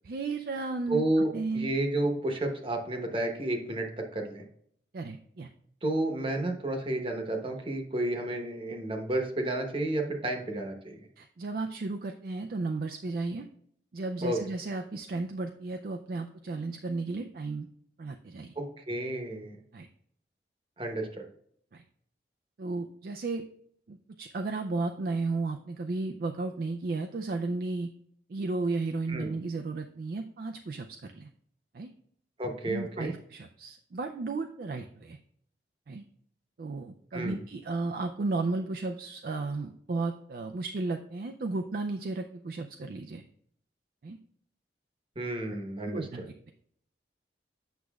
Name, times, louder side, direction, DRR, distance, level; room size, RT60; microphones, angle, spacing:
voice 1, 0.0-1.0 1.3-1.7 4.9-5.5 11.2-13.5 13.9-17.7 18.0-18.5 19.7-19.9 21.7-21.8 22.6-23.4 23.9-27.9 28.3-31.3 31.7-31.9 32.7-35.2 35.9-36.0 36.6-43.2 44.0-44.2 45.9-46.5, right 3 dB, 55° right, 5 dB, 0.4 m, -34 dB
voice 2, 0.9-4.4 5.8-11.0 14.2-14.4 18.6-19.6 20.8-21.3 29.1-29.3 32.4-33.1 37.1-37.4 45.2-46.3, right 1 dB, 30° right, 3 dB, 1.0 m, -31 dB
8.1 x 6.2 x 2.3 m, 0.66 s
head